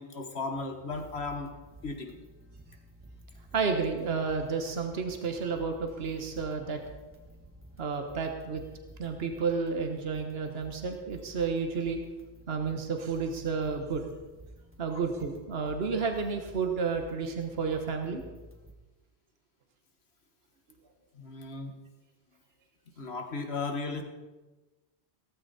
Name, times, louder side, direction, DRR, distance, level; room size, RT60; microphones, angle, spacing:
voice 1, 0.0-1.5 1.8-2.2 14.9-15.0 21.1-21.7 23.0-24.0, left 3 dB, 70° left, 5 dB, 1.8 m, -35 dB
sound 1, 0.9-18.7, right 1 dB, 10° right, 1.6 m, -52 dB
voice 2, 3.5-6.8 7.8-8.6 9.0-12.0 12.5-14.0 14.8-18.2, right 5 dB, 65° right, 5 dB, 1.5 m, -31 dB
16.5 x 14.5 x 4.2 m, 1.2 s
omnidirectional pair, 1.1 m